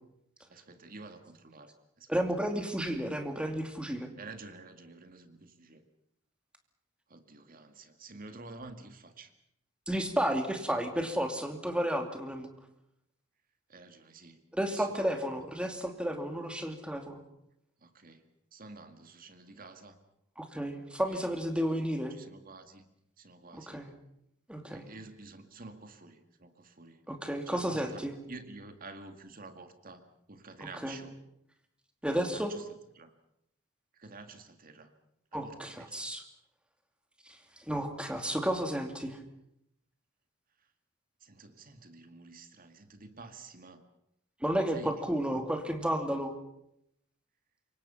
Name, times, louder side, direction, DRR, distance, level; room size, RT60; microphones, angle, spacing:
voice 1, 0.5-1.7 2.0-2.1 4.2-5.8 7.1-9.3 13.7-15.1 17.8-18.2 18.5-20.0 21.1-21.3 22.1-22.9 23.2-23.9 24.7-27.0 27.5-28.0 28.3-30.0 30.3-31.2 32.3-32.6 33.0-33.1 34.0-34.9 35.3-35.9 41.2-43.8 44.7-45.0 45.3-45.4, right 3 dB, 45° right, 8 dB, 2.0 m, -49 dB
voice 2, 2.1-4.1 9.9-12.5 14.5-17.2 20.4-22.1 23.5-23.9 24.5-24.9 27.1-28.1 30.7-31.0 32.0-32.5 35.3-36.2 37.7-39.2 44.4-46.3, equal, 5° right, 5 dB, 2.6 m, -32 dB
27.5 x 24.0 x 5.7 m, 0.78 s
head